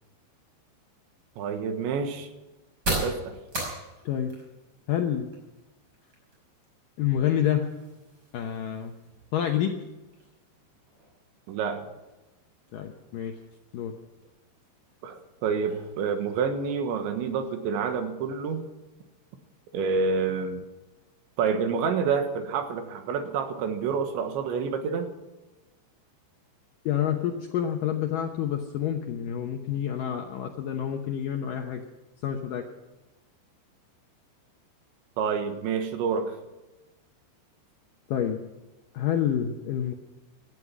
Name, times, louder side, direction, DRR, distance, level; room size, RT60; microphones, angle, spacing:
sound 1, 0.7-18.3, right 1 dB, 20° right, 5.7 m, -41 dB
voice 1, 1.4-2.3 3.0-3.4 11.5-11.9 15.0-18.7 19.7-20.6 21.4-25.1 35.2-36.4, right 5 dB, 80° right, 7 dB, 3.7 m, -28 dB
voice 2, 4.9-5.3 7.0-7.7 8.3-8.9 9.3-9.8 12.7-13.3 13.7-13.9 26.9-31.8 32.2-32.6 38.1-38.4 38.9-39.9, left 10 dB, 75° left, 3 dB, 2.0 m, -28 dB
18.0 x 12.5 x 6.1 m, 1.1 s
omnidirectional pair, 5.2 m